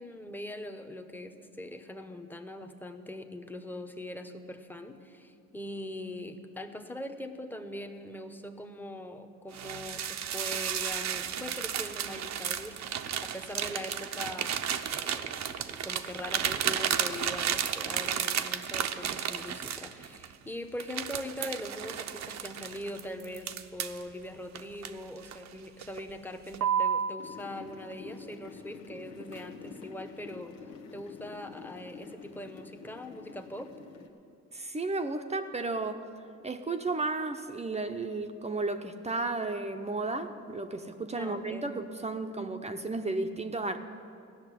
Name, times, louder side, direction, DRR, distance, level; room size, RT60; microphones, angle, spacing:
voice 1, 0.0-33.7 41.1-41.9, left 1 dB, 5° left, 7 dB, 0.9 m, -42 dB
sound 1, 9.5-20.3 20.8-24.0 24.5-25.5 25.8-26.1 26.5-27.1, right 9 dB, 65° right, 0.7 m, -33 dB
sound 2, 27.2-34.1, left 5 dB, 90° left, 1.2 m, -47 dB
voice 2, 34.5-36.1 36.4-43.8, right 3 dB, 20° right, 6 dB, 0.7 m, -33 dB
15.0 x 6.5 x 10.0 m, 2.5 s
cardioid pair, 90°, 30 cm